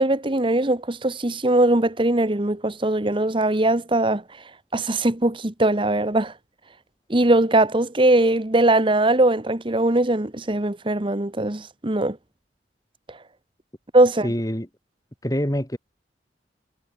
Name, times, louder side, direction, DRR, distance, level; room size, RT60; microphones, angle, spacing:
voice 1, 0.0-4.2 4.7-6.3 7.1-12.2 13.9-14.3, right 2 dB, 30° right, 1.2 m, -20 dB
voice 2, 14.2-14.7 15.2-15.8, equal, 20° left, 3.1 m, -25 dB
head